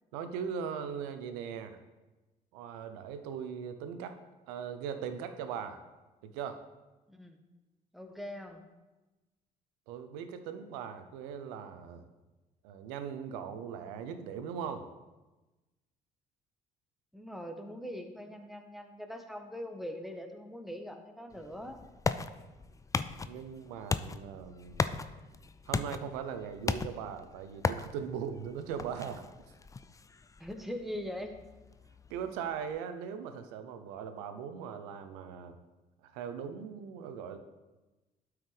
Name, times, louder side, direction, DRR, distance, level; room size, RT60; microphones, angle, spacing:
voice 1, 0.1-1.8 2.5-4.2 4.5-5.8 6.2-6.6 9.9-12.1 12.6-14.8 23.2-24.9 25.7-29.3 32.1-35.6 36.0-37.4, right 7 dB, 75° right, 9 dB, 0.6 m, -39 dB
voice 2, 7.1-7.4 7.9-8.6 17.1-21.8 30.4-31.3, equal, ahead, 5 dB, 1.2 m, -42 dB
sound 1, 21.3-32.8, left 4 dB, 15° left, 0.4 m, -38 dB
12.0 x 4.7 x 3.3 m, 1.1 s
hypercardioid pair, 50°, 21 cm